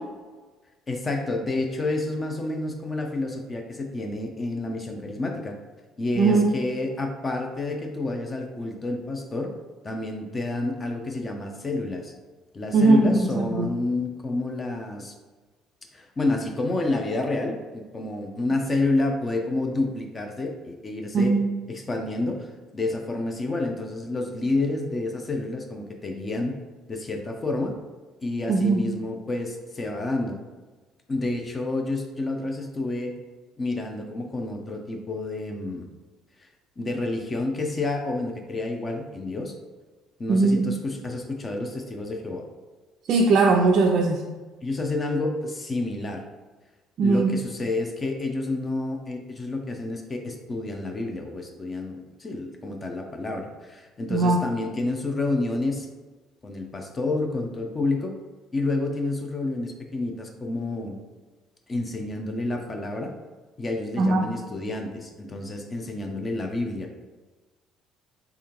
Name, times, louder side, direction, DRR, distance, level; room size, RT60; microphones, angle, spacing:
voice 1, 0.9-5.5 6.0-9.5 9.8-12.1 12.5-15.1 15.9-21.4 21.7-26.5 26.9-27.7 28.2-30.4 31.1-33.1 33.6-35.9 36.4-36.5 36.8-39.5 40.2-42.4 44.6-46.2 47.0-55.9 56.4-58.1 58.5-61.0 61.7-63.1 63.6-67.0, left 2 dB, 30° left, 3 dB, 0.6 m, -29 dB
voice 2, 6.2-6.5 12.7-13.7 21.1-21.4 28.5-28.8 40.3-40.6 43.1-44.2 47.0-47.3 54.1-54.4 64.0-64.3, right 3 dB, 55° right, 0 dB, 0.3 m, -19 dB
3.6 x 3.4 x 2.9 m, 1.3 s
hypercardioid pair, 55°, 0 cm